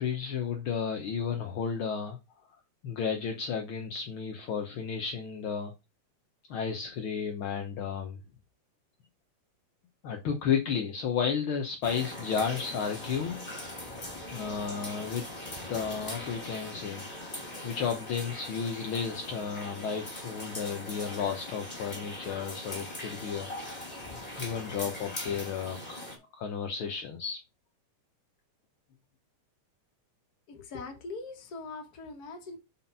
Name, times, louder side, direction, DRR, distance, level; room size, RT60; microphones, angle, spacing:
voice 1, 0.0-2.2 2.8-5.7 6.5-8.2 10.0-13.4 14.3-15.2 15.7-17.0 17.6-23.9 24.4-26.0 26.4-27.4, left 6 dB, 70° left, 1.2 m, -33 dB
sound 1, 11.8-26.2, left 1 dB, 15° left, 2.3 m, -41 dB
voice 2, 30.5-32.6, left 3 dB, 45° left, 1.4 m, -41 dB
5.9 x 5.0 x 5.4 m
omnidirectional pair, 3.5 m